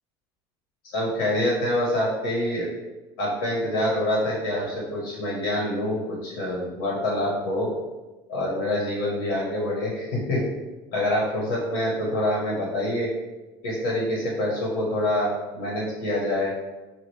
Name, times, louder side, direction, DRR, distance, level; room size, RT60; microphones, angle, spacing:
voice 1, 0.9-2.7 3.2-7.7 8.3-10.4 10.9-13.1 13.6-16.5, left 1 dB, 80° left, -4 dB, 1.4 m, -26 dB
5.7 x 2.5 x 3.3 m, 1.1 s
cardioid pair, 140°, 11 cm